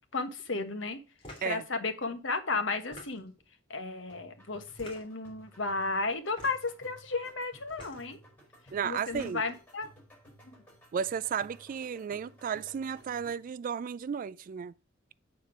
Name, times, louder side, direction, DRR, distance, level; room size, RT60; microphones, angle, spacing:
voice 1, 0.1-1.0 1.4-3.3 3.7-8.2 8.8-9.9 10.4-10.6, left 3 dB, 70° left, 1.2 m, -34 dB
sound 1, 1.2-1.5 2.7-3.4 4.7-5.3 6.3-6.7 7.7-8.0 8.9-9.6, left 1 dB, 30° left, 3.3 m, -48 dB
sound 2, 4.1-13.6, equal, 10° left, 5.3 m, -57 dB
voice 2, 8.7-9.4 10.9-14.7, right 7 dB, 45° right, 0.3 m, -34 dB
8.5 x 4.3 x 5.9 m
head